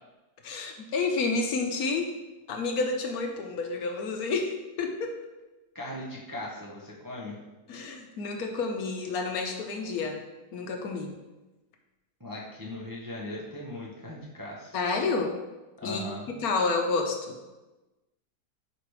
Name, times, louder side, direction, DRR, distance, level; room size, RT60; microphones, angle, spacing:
voice 1, 0.4-2.1 2.5-5.1 7.7-10.2 10.5-11.1 14.7-15.4 15.8-16.1 16.4-17.4, left 4 dB, 70° left, 3 dB, 1.1 m, -29 dB
voice 2, 5.7-7.4 12.2-14.8 15.8-16.4, left 1 dB, 20° right, -4 dB, 0.6 m, -39 dB
4.9 x 4.8 x 4.8 m, 1.1 s
omnidirectional pair, 1.8 m